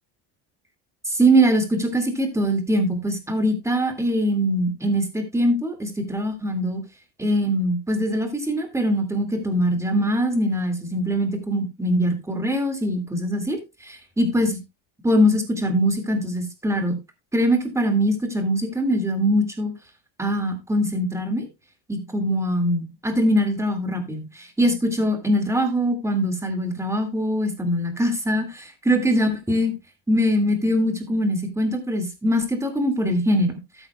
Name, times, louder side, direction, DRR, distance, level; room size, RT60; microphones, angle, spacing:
voice 1, 1.1-6.8 7.2-14.6 15.0-17.0 17.3-19.7 20.2-21.5 21.9-29.7 30.1-33.6, equal, 5° right, 5 dB, 2.0 m, -22 dB
12.5 x 9.0 x 2.2 m, 0.24 s
cardioid pair, 130°, 43 cm